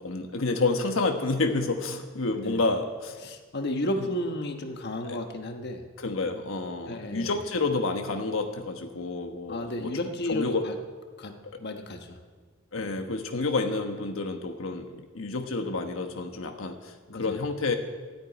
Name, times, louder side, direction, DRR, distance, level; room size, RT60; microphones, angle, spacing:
voice 1, 0.0-3.2 5.1-5.2 6.0-9.9 10.3-10.7 11.5-11.6 12.7-17.8, left 3 dB, 75° left, 5 dB, 1.2 m, -29 dB
voice 2, 3.2-5.8 6.9-7.4 9.5-10.7 11.2-11.3 11.6-12.2 12.8-12.9 17.1-17.4, left 1 dB, 55° left, 5 dB, 1.2 m, -33 dB
13.5 x 9.0 x 9.5 m, 1.4 s
head